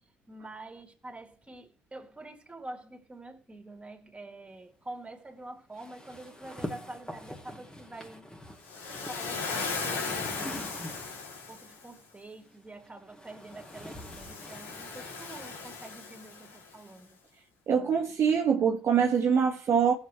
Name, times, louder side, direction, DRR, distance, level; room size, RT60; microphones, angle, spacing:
voice 1, 0.3-8.3 9.0-10.9 11.5-17.2, right 2 dB, 20° right, 3.1 m, -46 dB
sound 1, 5.7-11.4 12.4-16.0, left 1 dB, 15° left, 2.6 m, -45 dB
Waves surf, 8.6-11.8 13.6-16.7, left 4 dB, 85° left, 3.3 m, -37 dB
voice 2, 17.7-19.9, right 7 dB, 50° right, 1.4 m, -24 dB
19.0 x 7.3 x 3.3 m
hypercardioid pair, 60°, 6 cm